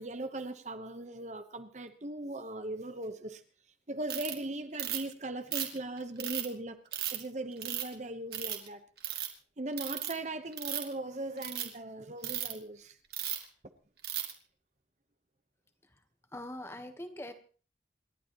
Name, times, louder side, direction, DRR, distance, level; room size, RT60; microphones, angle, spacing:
voice 1, 0.0-3.4 3.9-6.8 7.1-8.8 9.6-13.0, right 2 dB, 40° right, 1.0 m, -39 dB
Ratchet pawl, 4.1-4.3 4.8-5.1 5.5-6.5 6.9-7.2 7.6-7.9 8.3-8.7 9.0-9.3 9.8-10.1 10.5-10.9 11.4-11.6 12.2-12.5 13.1-13.4 14.0-14.3, right 11 dB, 55° right, 2.5 m, -35 dB
voice 2, 16.3-17.3, left 1 dB, 15° left, 1.2 m, -42 dB
28.5 x 12.0 x 3.0 m
head